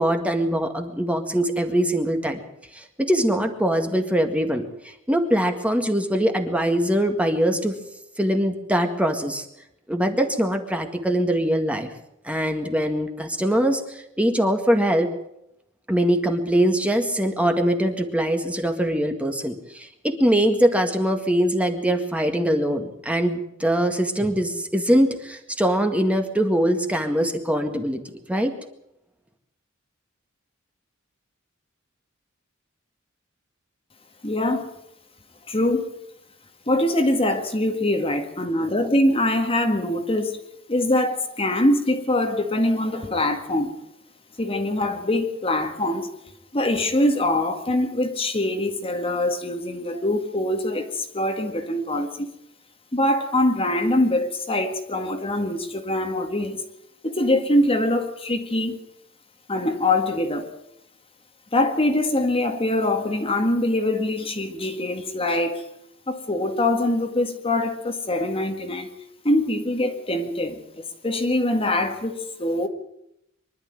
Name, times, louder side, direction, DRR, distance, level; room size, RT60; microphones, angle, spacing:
voice 1, 0.0-2.4 2.7-7.8 8.2-9.5 9.9-11.9 12.2-15.1 15.9-28.0 28.3-28.5, equal, 5° right, 1.9 m, -22 dB
voice 2, 34.2-34.7 35.5-35.9 36.7-40.4 40.7-43.8 44.4-46.1 46.5-52.3 52.9-56.6 57.0-58.8 59.5-60.5 61.5-65.6 66.1-68.9 69.2-72.7, left 1 dB, 30° left, 1.9 m, -23 dB
24.0 x 12.0 x 9.0 m
head